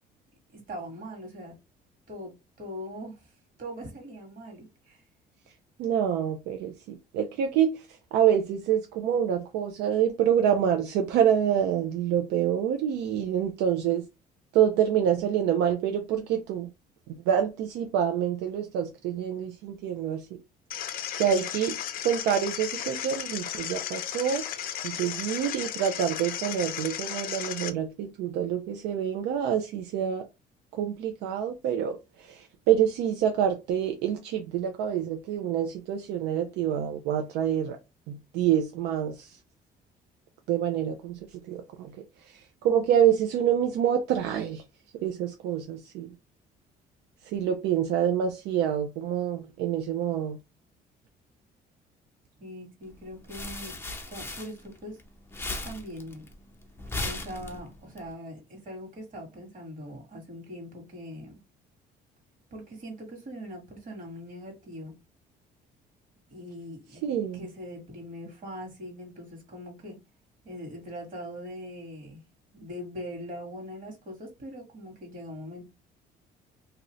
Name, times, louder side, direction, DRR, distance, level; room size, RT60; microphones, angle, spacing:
voice 1, 0.5-1.6 2.1-2.3 2.6-3.3 3.6-5.0 52.4-53.8 54.1-55.0 55.6-56.3 57.0-61.4 62.5-64.9 66.3-67.0 67.3-70.0 70.4-72.2 72.5-75.7, equal, 50° right, 1.7 m, -41 dB
voice 2, 5.8-14.1 14.5-16.7 17.3-20.4 21.1-24.5 24.8-30.2 30.7-37.8 38.1-39.4 40.5-41.2 41.5-41.9 42.2-44.6 45.0-46.1 47.2-50.4 67.0-67.5, right 9 dB, 85° right, 0.4 m, -27 dB
sound 1, 20.7-27.7, left 10 dB, 60° left, 0.4 m, -35 dB
sound 2, 52.9-55.0 55.3-58.0, left 2 dB, 15° left, 0.8 m, -36 dB
2.8 x 2.6 x 3.0 m
cardioid pair, 110°, 17 cm